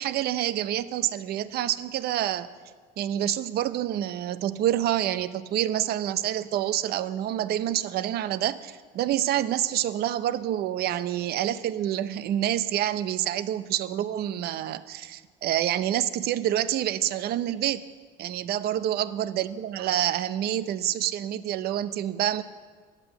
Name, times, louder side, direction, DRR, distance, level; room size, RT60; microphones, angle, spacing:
voice 1, 0.0-2.5 3.0-17.8 18.2-22.4, right 12 dB, 70° right, 14 dB, 0.6 m, -27 dB
11.5 x 8.3 x 7.8 m, 1.5 s
cardioid pair, 110°, 17 cm